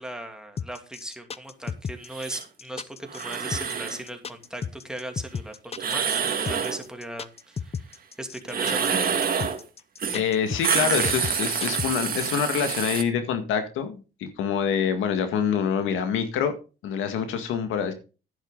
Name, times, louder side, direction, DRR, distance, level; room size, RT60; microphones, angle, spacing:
voice 1, 0.0-6.1 6.5-9.1 10.7-11.1, right 1 dB, 5° right, 4 dB, 2.6 m, -38 dB
sound 1, 0.6-12.3, left 6 dB, 30° left, 0.7 m, -34 dB
sound 2, 2.1-2.4 3.1-4.0 5.8-6.8 8.4-9.6 10.0-10.2 10.5-13.0, right 7 dB, 45° right, 2.0 m, -27 dB
voice 2, 10.1-16.6 16.8-17.9, left 7 dB, 90° left, 8 dB, 1.9 m, -26 dB
10.5 x 10.5 x 3.9 m, 0.32 s
cardioid pair, 90°, 20 cm